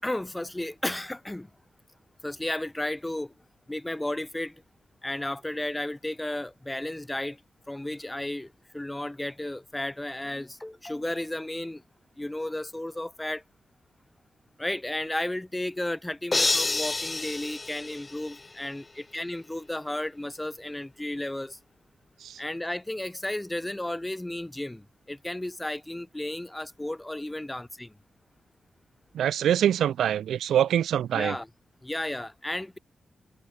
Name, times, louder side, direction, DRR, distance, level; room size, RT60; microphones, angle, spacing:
voice 1, 0.0-1.5 2.2-3.3 3.7-4.5 5.0-7.4 7.7-11.8 12.2-13.4 14.6-21.6 22.4-27.9 31.1-31.5 31.8-32.8, left 1 dB, 15° left, 5.9 m, -33 dB
sound 1, 16.3-18.6, left 3 dB, 35° left, 4.7 m, -28 dB
voice 2, 29.1-31.4, right 10 dB, 90° right, 2.3 m, -24 dB
cardioid pair, 55°, 0 cm